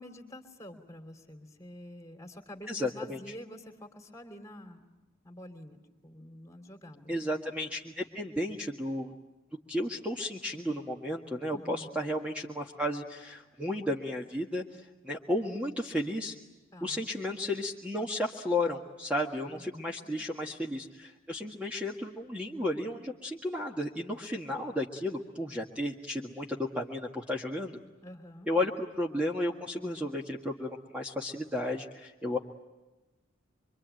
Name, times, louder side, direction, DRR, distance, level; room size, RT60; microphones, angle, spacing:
voice 1, 0.0-4.9 5.2-7.1 11.5-11.9 16.7-17.0 19.5-19.9 28.0-28.5, equal, 15° left, 6 dB, 3.1 m, -48 dB
voice 2, 2.7-3.3 7.1-9.1 9.7-16.4 16.8-27.8 28.5-32.4, left 1 dB, 5° right, -1 dB, 1.7 m, -33 dB
25.5 x 25.0 x 9.1 m, 1.1 s
head